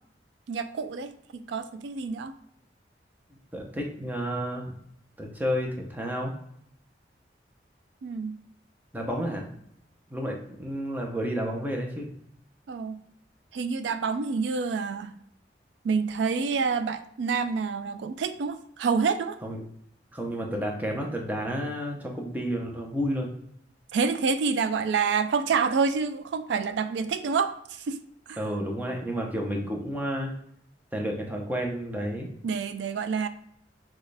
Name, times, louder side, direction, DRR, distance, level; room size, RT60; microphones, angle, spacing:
voice 1, 0.5-2.3 8.0-8.4 12.7-13.0 13.5-15.1 15.8-19.4 23.9-28.0 28.3-28.4 32.4-33.3, right 5 dB, 85° right, 11 dB, 0.3 m, -28 dB
voice 2, 3.5-4.7 5.2-6.3 8.9-9.4 10.1-12.1 19.4-19.6 20.1-23.3 28.4-30.3 30.9-32.3, equal, 10° right, 0 dB, 0.7 m, -31 dB
6.3 x 2.4 x 3.3 m, 0.71 s
head